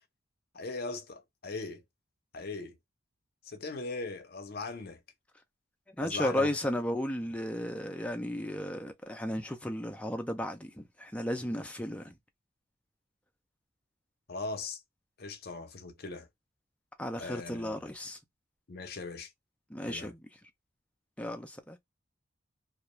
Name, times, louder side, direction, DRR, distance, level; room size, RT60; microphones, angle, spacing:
voice 1, 0.5-1.8 2.3-2.8 3.4-5.0 6.0-6.5 14.3-14.8 15.2-16.3 17.2-17.8 18.7-19.3 19.9-20.1, left 3 dB, 50° left, 0.6 m, -39 dB
voice 2, 5.9-12.2 17.0-18.2 19.7-20.4 21.2-21.8, left 1 dB, 5° left, 0.4 m, -34 dB
2.4 x 2.2 x 2.9 m
head